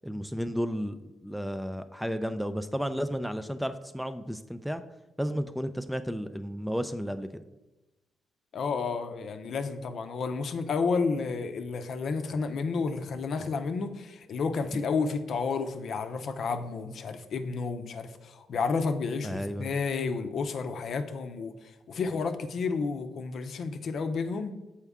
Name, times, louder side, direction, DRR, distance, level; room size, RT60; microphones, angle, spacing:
voice 1, 0.0-4.8 5.2-7.3 19.2-19.7, equal, ahead, 10 dB, 0.4 m, -33 dB
voice 2, 8.5-24.5, left 4 dB, 60° left, 7 dB, 0.6 m, -31 dB
7.0 x 4.5 x 3.5 m, 1.1 s
cardioid pair, 85°, 0 cm